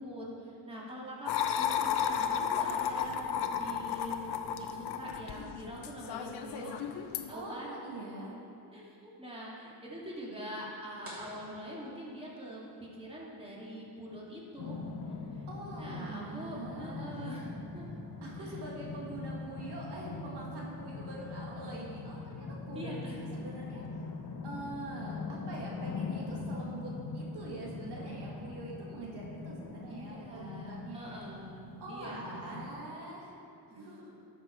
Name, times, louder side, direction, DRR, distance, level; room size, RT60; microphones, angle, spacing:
voice 1, 0.0-6.7 7.3-7.8 8.7-14.8 15.1-15.5 15.7-17.5 17.7-17.9 18.4-18.5 22.7-23.2 29.9-31.6 31.9-32.4 33.7-33.8, equal, 15° right, -5 dB, 2.5 m, -44 dB
sound 1, 1.3-7.3, left 8 dB, 85° left, 0.7 m, -33 dB
voice 2, 7.3-8.3 15.5-17.2 18.2-23.8 24.4-31.2 31.8-33.3 33.8-34.1, right 2 dB, 85° right, -3 dB, 2.0 m, -44 dB
sound 2, 11.0-12.7, equal, 35° right, 2.6 m, -52 dB
sound 3, 14.6-32.7, left 3 dB, 55° left, 1.1 m, -42 dB
12.0 x 6.7 x 4.5 m, 2.6 s
cardioid pair, 85°, 39 cm